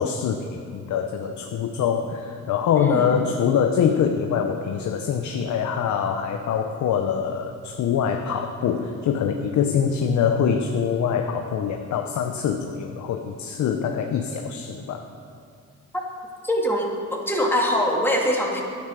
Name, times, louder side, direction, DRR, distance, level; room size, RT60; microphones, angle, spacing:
voice 1, 0.0-15.1, left 7 dB, 70° left, 5 dB, 0.8 m, -24 dB
voice 2, 2.8-3.1 16.4-18.6, equal, 5° left, -1 dB, 2.2 m, -23 dB
11.5 x 9.9 x 6.2 m, 2.3 s
cardioid pair, 90°, 30 cm